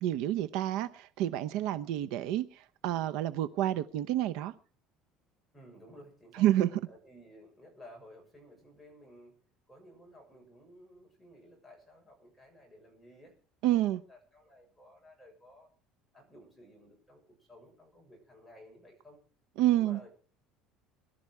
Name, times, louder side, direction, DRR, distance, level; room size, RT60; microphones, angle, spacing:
voice 1, 0.0-4.5 6.4-6.7 13.6-14.0 19.6-20.0, right 13 dB, 70° right, 11 dB, 0.9 m, -29 dB
voice 2, 5.5-6.5 6.9-9.3 9.7-13.3 13.8-15.7 16.1-19.2 19.7-20.1, equal, ahead, -1 dB, 7.0 m, -55 dB
22.0 x 12.5 x 4.8 m, 0.42 s
cardioid pair, 170°, 0 cm